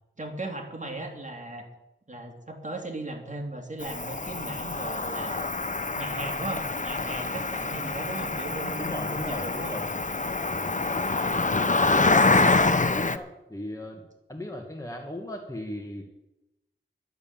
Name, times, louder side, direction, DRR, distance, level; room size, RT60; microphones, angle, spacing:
voice 1, 0.2-1.6 2.1-5.6 6.0-9.8, right 2 dB, 35° right, 2 dB, 2.7 m, -37 dB
Cricket, 3.8-13.2, left 3 dB, 35° left, 0.8 m, -26 dB
voice 2, 8.8-9.8 10.5-10.8 12.1-14.0 14.3-16.0, left 1 dB, 15° left, 1 dB, 1.8 m, -37 dB
11.0 x 9.8 x 7.2 m, 0.93 s
wide cardioid pair, 50°, 21 cm